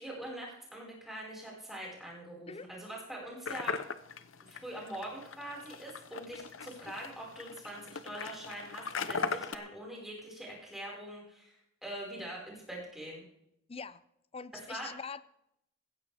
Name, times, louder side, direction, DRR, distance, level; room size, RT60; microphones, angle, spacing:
voice 1, 0.0-3.8 4.4-13.2 14.7-14.9, right 1 dB, ahead, -4 dB, 4.9 m, -43 dB
sound 1, 3.5-9.6, left 5 dB, 70° left, 0.8 m, -39 dB
voice 2, 13.7-14.0 14.3-15.2, left 5 dB, 30° left, 16 dB, 0.5 m, -43 dB
16.5 x 14.5 x 3.4 m, 0.79 s
head